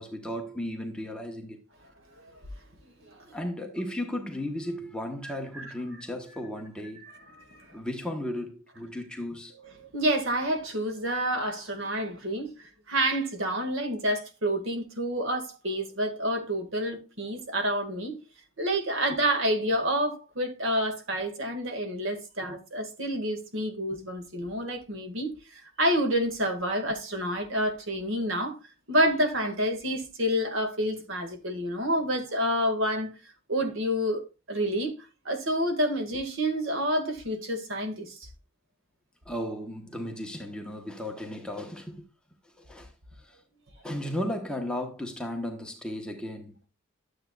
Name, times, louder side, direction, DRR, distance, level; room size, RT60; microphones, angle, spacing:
voice 1, 0.0-1.6 3.3-7.1 7.7-9.5 22.4-22.6 39.2-42.1 42.4-43.4 43.8-46.6, left 1 dB, 5° left, 1.1 m, -35 dB
voice 2, 3.0-3.4 5.6-5.7 7.0-7.8 9.9-18.2 18.6-28.6 28.9-33.1 33.5-34.9 35.3-38.3, equal, 60° right, 2.0 m, -28 dB
12.5 x 7.9 x 2.4 m
head